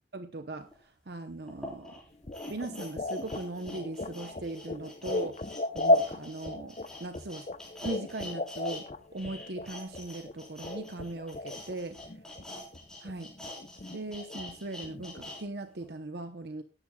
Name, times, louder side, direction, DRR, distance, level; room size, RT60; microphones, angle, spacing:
voice 1, 0.1-1.9 2.5-7.5 7.8-12.0 13.0-13.3 13.9-16.6, right 2 dB, 65° right, 8 dB, 0.8 m, -39 dB
sound 1, 0.7-0.8 1.5-8.8 9.1-15.4 15.8-15.9, left 1 dB, 5° left, 4.1 m, -46 dB
sound 2, 2.3-11.7 12.0-12.8 13.0-15.3, left 2 dB, 40° left, 0.7 m, -34 dB
18.0 x 11.0 x 2.3 m, 0.31 s
head